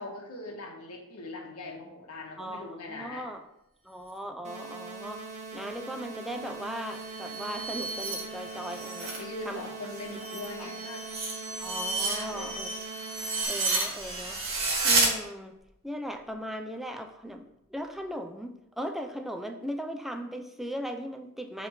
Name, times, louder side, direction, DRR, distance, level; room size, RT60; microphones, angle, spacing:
voice 1, 0.0-3.3 9.0-11.1 12.0-12.5, left 2 dB, 85° left, 0 dB, 1.4 m, -41 dB
voice 2, 2.4-3.4 3.8-9.1 9.4-9.7 10.3-10.7 11.6-12.7 13.5-14.4 14.8-15.6 15.8-21.7, equal, ahead, 5 dB, 0.4 m, -38 dB
sound 1, 4.4-13.4, right 4 dB, 35° right, 1.0 m, -42 dB
sound 2, 6.8-9.2 9.6-15.1, right 3 dB, 65° right, 1.5 m, -31 dB
6.0 x 3.4 x 5.6 m, 0.86 s
head